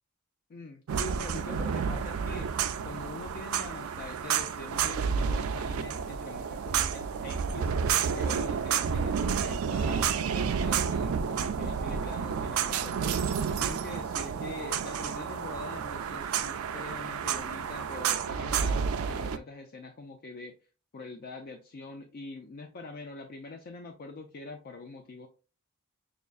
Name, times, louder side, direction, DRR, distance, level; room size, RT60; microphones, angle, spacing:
voice 1, 0.5-10.1 10.3-13.2 13.5-20.5 20.9-25.3, left 3 dB, 45° left, 5 dB, 0.4 m, -44 dB
sound 1, 0.9-19.4, right 7 dB, 70° right, 0.4 m, -30 dB
6.4 x 2.4 x 2.3 m, 0.34 s
head